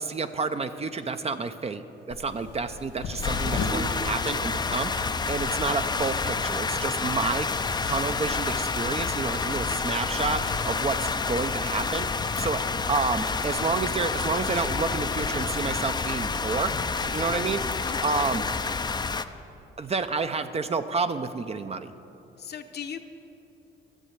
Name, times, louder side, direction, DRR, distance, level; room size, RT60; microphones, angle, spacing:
voice 1, 0.0-7.5 7.8-12.1 12.4-12.6 12.9-16.8 17.1-18.4 19.8-21.9, right 4 dB, 30° right, 9 dB, 0.6 m, -29 dB
sound 1, 2.1-17.7, left 4 dB, 80° left, 1.9 m, -39 dB
sound 2, 3.2-19.2, left 4 dB, 20° left, 0.5 m, -29 dB
voice 2, 17.1-17.5 17.8-18.4 22.4-23.0, left 7 dB, 55° left, 6 dB, 0.9 m, -39 dB
13.5 x 7.4 x 8.1 m, 2.8 s
cardioid pair, 90°, 20 cm